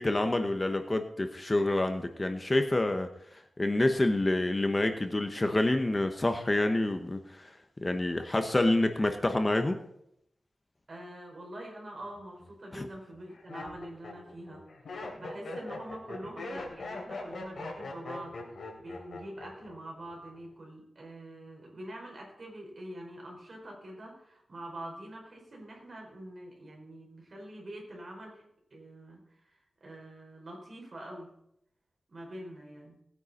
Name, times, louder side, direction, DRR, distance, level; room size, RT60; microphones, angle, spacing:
voice 1, 0.0-3.1 3.6-7.5 7.8-9.8 12.7-12.9, left 2 dB, 20° left, 6 dB, 0.9 m, -27 dB
voice 2, 10.9-31.3 32.1-33.0, right 1 dB, 45° right, 0 dB, 4.7 m, -45 dB
Laughter, 12.1-12.5 13.1-19.7 20.0-20.5, left 2 dB, 75° left, 3.2 m, -41 dB
18.5 x 9.4 x 4.2 m, 0.75 s
wide cardioid pair, 125°, 0 cm